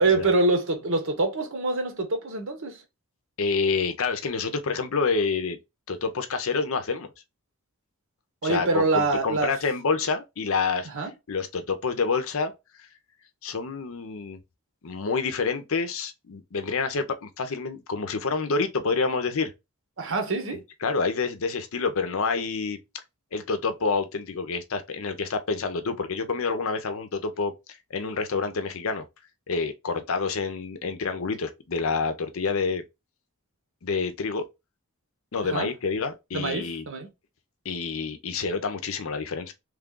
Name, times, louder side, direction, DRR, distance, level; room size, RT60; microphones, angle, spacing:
voice 1, 0.0-2.8 8.4-9.5 10.9-11.1 20.0-20.6 35.4-35.7 36.3-37.1, right 2 dB, 60° right, 0.9 m, -25 dB
voice 2, 3.4-5.6 5.9-7.1 8.4-12.5 13.4-14.4 14.8-19.5 20.8-22.8 23.3-27.5 27.9-29.1 29.5-32.8 33.8-34.4 35.3-36.9 37.6-39.5, left 4 dB, 65° left, 0.6 m, -28 dB
3.1 x 2.4 x 3.7 m
head